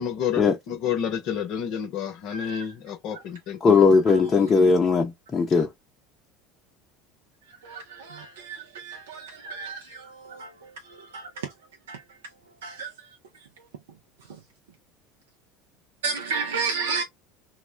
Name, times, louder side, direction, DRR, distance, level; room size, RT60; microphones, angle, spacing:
voice 1, 0.0-3.7 5.5-5.7, left 8 dB, 60° left, 0.8 m, -30 dB
voice 2, 2.3-2.7 4.1-4.2 7.5-11.5 11.9-12.2 12.6-13.5 16.0-17.0, right 5 dB, 85° right, 0.5 m, -33 dB
voice 3, 3.6-5.7, left 4 dB, 30° left, 0.7 m, -19 dB
2.3 x 2.1 x 3.3 m
hypercardioid pair, 75°, 0 cm